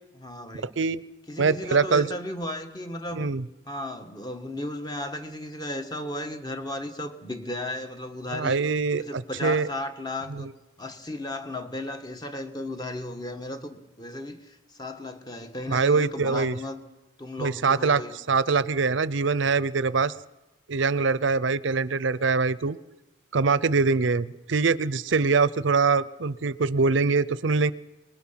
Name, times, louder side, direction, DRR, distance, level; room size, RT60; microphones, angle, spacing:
voice 1, 0.2-0.7 1.3-3.3 3.7-8.6 9.0-10.5 10.8-16.8 17.2-18.2, left 1 dB, 20° left, 1.4 m, -35 dB
voice 2, 1.4-2.1 3.1-3.4 8.3-9.7 10.3-10.5 15.7-16.6 17.4-20.1 20.7-22.8 23.3-27.7, right 4 dB, 70° right, 0.6 m, -23 dB
25.0 x 20.5 x 5.8 m
head